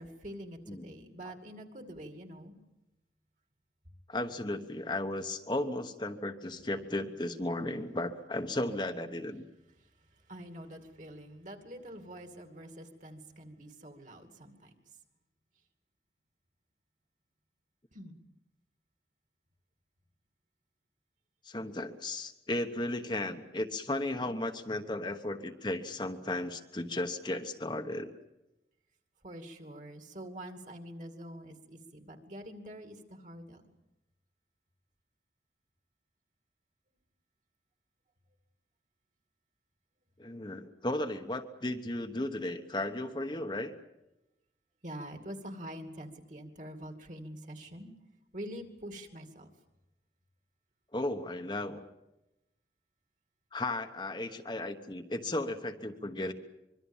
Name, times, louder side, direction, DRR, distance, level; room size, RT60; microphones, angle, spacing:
voice 1, 0.0-2.6 9.8-15.0 17.9-18.2 29.2-33.6 44.8-47.9 48.3-49.5, equal, 45° right, 6 dB, 2.5 m, -46 dB
voice 2, 4.1-9.4 21.4-28.1 40.2-43.7 50.9-51.8 53.5-56.3, left 1 dB, 25° left, 5 dB, 1.1 m, -35 dB
25.0 x 23.0 x 7.3 m, 0.95 s
head